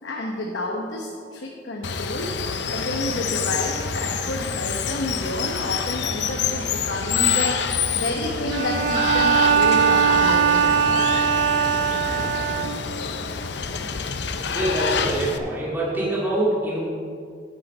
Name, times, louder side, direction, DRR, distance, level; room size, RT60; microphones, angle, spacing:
voice 1, 0.0-11.1, left 1 dB, 85° left, 0 dB, 1.0 m, -30 dB
Water, 1.8-15.4, left 6 dB, 65° left, 0.6 m, -27 dB
Bowed string instrument, 8.5-13.1, right 7 dB, 65° right, 0.5 m, -20 dB
voice 2, 14.5-16.8, right 1 dB, 10° right, -7 dB, 2.1 m, -25 dB
8.4 x 8.2 x 5.5 m, 2.2 s
head